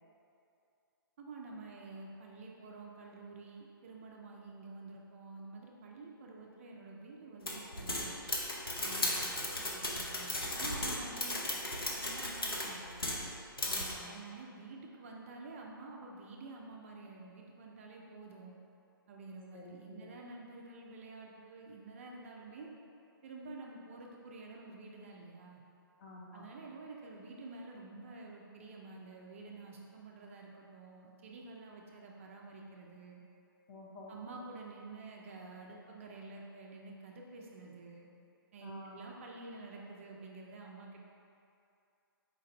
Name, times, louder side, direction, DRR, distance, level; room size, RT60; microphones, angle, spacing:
voice 1, 1.2-8.1 8.8-13.3 14.0-18.5 19.1-22.7 23.2-25.6 26.3-33.2 34.1-38.1 38.5-41.0, right 3 dB, 35° right, -1 dB, 0.4 m, -49 dB
sound 1, 7.5-13.3 13.6-13.9, left 1 dB, 75° left, 0.8 m, -35 dB
voice 2, 13.6-14.2 19.5-20.1 26.0-26.4 33.7-34.1 38.6-39.0, left 2 dB, 25° left, -3 dB, 0.6 m, -50 dB
4.5 x 2.5 x 4.0 m, 2.5 s
figure-of-eight pair, 130°, 12 cm